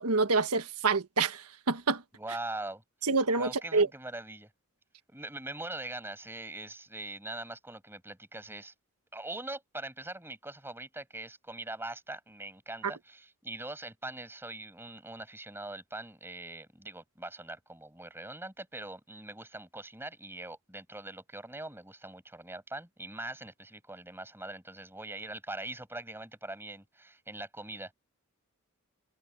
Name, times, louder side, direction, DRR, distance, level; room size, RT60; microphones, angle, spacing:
voice 1, 0.0-2.0 3.0-3.9, right 3 dB, 85° right, 1.5 m, -27 dB
voice 2, 2.1-2.8 3.4-4.5 5.1-8.7 9.1-27.9, right 2 dB, 10° right, 8.0 m, -42 dB
head